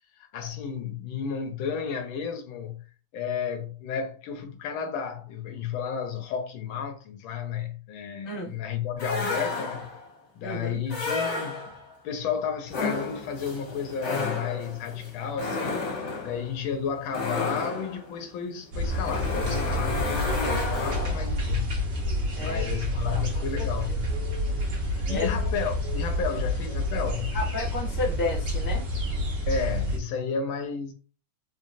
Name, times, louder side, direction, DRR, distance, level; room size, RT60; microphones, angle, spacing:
voice 1, 0.3-2.8 3.1-9.9 10.3-11.7 12.0-15.9 16.2-21.8 22.4-24.1 24.9-27.4 29.5-30.9, left 6 dB, 75° left, 1.4 m, -32 dB
voice 2, 8.2-8.6 10.4-10.8 22.4-22.7 23.1-24.0 25.1-25.3 27.3-28.9, left 2 dB, 15° left, 0.6 m, -32 dB
sound 1, 9.0-10.1 10.9-11.9 12.7-21.4, left 3 dB, 50° left, 0.9 m, -32 dB
sound 2, 18.7-30.0, left 1 dB, 55° right, 1.1 m, -28 dB
3.8 x 2.0 x 2.5 m
omnidirectional pair, 2.3 m